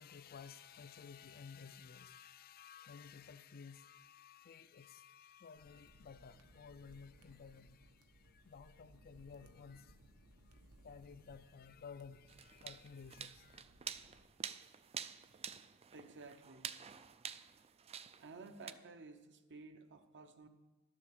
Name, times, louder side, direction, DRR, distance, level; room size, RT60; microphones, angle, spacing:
voice 1, 0.0-13.6, left 6 dB, 45° left, 0.4 m, -55 dB
sound 1, 5.6-14.2, right 1 dB, 75° right, 1.2 m, -64 dB
sound 2, 12.3-18.7, right 8 dB, 25° right, 0.4 m, -48 dB
voice 2, 15.9-16.7 18.2-20.5, right 3 dB, 55° right, 0.9 m, -54 dB
12.0 x 7.5 x 6.8 m
head